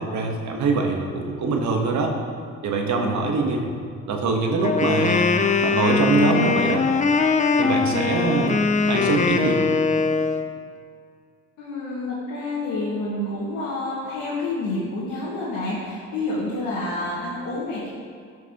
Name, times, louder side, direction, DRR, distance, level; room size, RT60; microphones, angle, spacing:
voice 1, 0.0-2.1 2.6-3.6 4.1-5.4 5.6-6.8 7.6-9.6, right 3 dB, 70° right, 2 dB, 1.3 m, -23 dB
Wind instrument woodwind instrument, 4.6-10.5, left 4 dB, 25° left, 0.5 m, -21 dB
voice 2, 11.6-17.9, left 2 dB, 85° left, -8 dB, 1.9 m, -28 dB
13.0 x 6.0 x 3.0 m, 2.1 s
cardioid pair, 90°, 30 cm